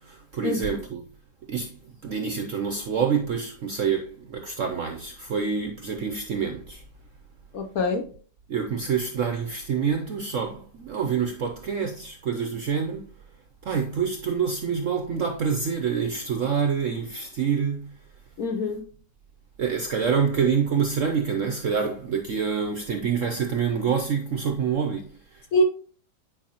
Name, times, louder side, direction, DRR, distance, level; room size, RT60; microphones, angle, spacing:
voice 1, 0.0-1.0 1.5-6.8 8.5-13.1 13.6-17.9 19.6-25.5, right 6 dB, 65° right, 0.8 m, -27 dB
voice 2, 7.5-8.0 18.4-18.8 25.5-25.6, left 2 dB, 65° left, 0.9 m, -24 dB
9.2 x 4.8 x 2.9 m
omnidirectional pair, 2.0 m